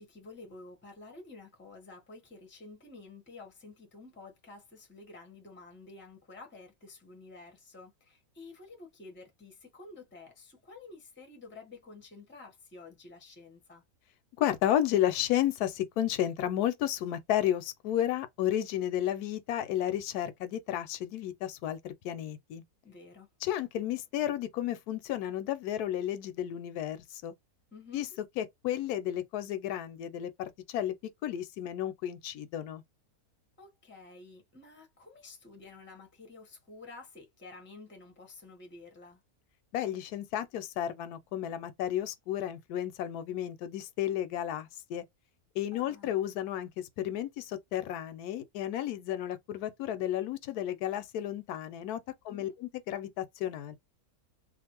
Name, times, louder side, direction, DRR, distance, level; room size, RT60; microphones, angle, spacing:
voice 1, 0.0-13.8 22.8-23.3 27.7-28.1 33.6-39.2 45.7-46.2 52.3-52.5, left 3 dB, 10° left, 0.7 m, -51 dB
voice 2, 14.4-22.6 23.4-27.3 27.9-31.0 31.2-32.8 39.7-45.0 45.6-53.8, left 11 dB, 85° left, 1.1 m, -32 dB
2.5 x 2.5 x 2.8 m
omnidirectional pair, 1.6 m